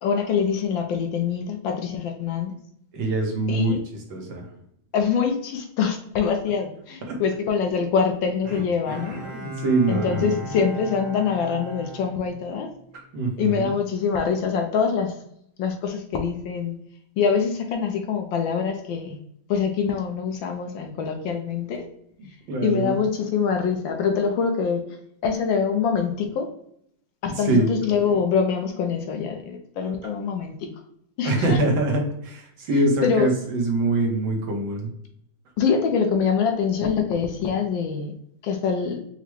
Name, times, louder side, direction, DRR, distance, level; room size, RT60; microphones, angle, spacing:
voice 1, 0.0-2.5 3.5-3.8 4.9-9.2 9.9-12.7 13.4-15.1 15.6-16.8 17.2-19.2 19.5-21.9 22.6-24.8 25.2-26.5 27.2-30.6 31.2-31.6 33.0-33.3 35.6-38.1 38.4-39.0, left 6 dB, 75° left, 4 dB, 1.3 m, -24 dB
voice 2, 2.9-4.5 7.0-7.2 9.2-10.6 13.1-13.7 22.5-23.0 27.3-27.7 31.2-34.9, right 2 dB, 70° right, 0 dB, 1.6 m, -24 dB
Bowed string instrument, 8.4-12.9 13.4-13.5, equal, 35° right, 0.3 m, -37 dB
5.9 x 2.1 x 3.0 m, 0.71 s
omnidirectional pair, 2.3 m